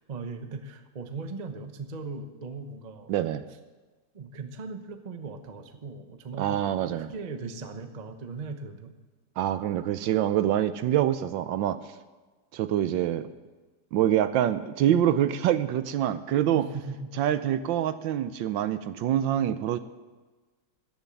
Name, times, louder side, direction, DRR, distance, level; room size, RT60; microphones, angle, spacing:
voice 1, 0.1-3.1 4.1-8.9 16.5-17.1, right 4 dB, 40° right, 7 dB, 0.6 m, -38 dB
voice 2, 3.1-3.4 6.4-7.1 9.4-11.8 12.5-13.3 13.9-16.7 17.2-19.8, right 11 dB, 75° right, 12 dB, 1.3 m, -25 dB
14.0 x 7.1 x 9.8 m, 1.3 s
omnidirectional pair, 2.2 m